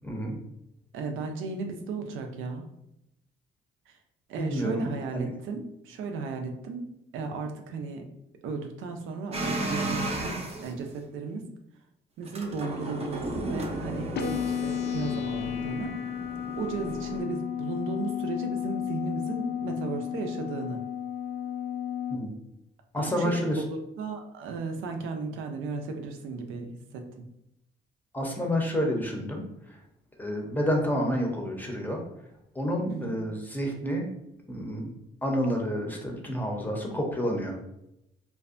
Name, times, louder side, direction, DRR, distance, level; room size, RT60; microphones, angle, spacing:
voice 1, 0.0-0.4 4.4-5.3 22.1-22.3 22.9-23.6 28.1-29.8 30.2-32.0 32.5-34.1 34.5-34.9 35.2-37.6, equal, 10° left, 0 dB, 0.6 m, -29 dB
voice 2, 0.9-2.7 3.9-4.0 4.3-6.9 7.1-8.1 8.4-11.5 12.2-16.0 16.6-20.9 23.0-27.2 32.9-33.2, right 4 dB, 85° right, 4 dB, 0.4 m, -35 dB
sound 1, 9.3-10.7 12.2-17.2, right 1 dB, 30° right, 0.5 m, -34 dB
sound 2, 14.1-22.2, left 9 dB, 55° left, 0.4 m, -33 dB
2.5 x 2.2 x 2.5 m, 0.84 s
cardioid pair, 90°, 20 cm